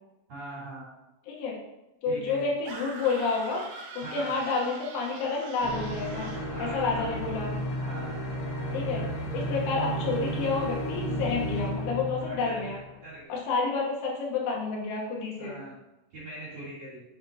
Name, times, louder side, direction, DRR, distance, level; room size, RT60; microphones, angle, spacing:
voice 1, 0.3-0.9 2.0-2.4 4.0-4.3 6.5-7.1 7.8-8.2 12.2-13.4 15.4-15.7 16.1-17.0, right 2 dB, 40° right, -10 dB, 3.5 m, -41 dB
voice 2, 1.3-1.6 2.0-3.6 3.9-6.3 6.6-7.6 8.7-9.0 9.3-12.8 13.3-15.6, left 4 dB, 75° left, -2 dB, 3.4 m, -29 dB
sound 1, 2.6-6.5, right 4 dB, 80° right, 3.1 m, -43 dB
sound 2, 5.6-13.2, equal, 45° left, 1.8 m, -33 dB
7.9 x 6.8 x 2.7 m, 0.97 s
omnidirectional pair, 5.6 m